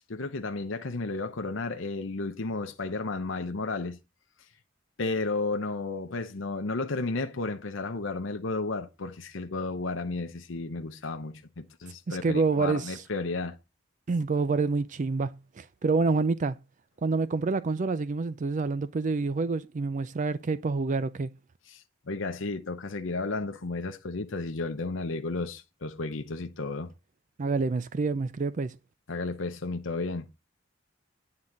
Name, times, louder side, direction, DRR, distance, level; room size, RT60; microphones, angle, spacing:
voice 1, 0.0-4.0 5.0-13.6 21.7-26.9 29.1-30.2, left 3 dB, 85° left, 0.8 m, -33 dB
voice 2, 12.1-13.0 14.1-16.6 17.0-21.3 27.4-28.8, right 4 dB, 40° right, 0.4 m, -27 dB
9.6 x 3.9 x 7.2 m
head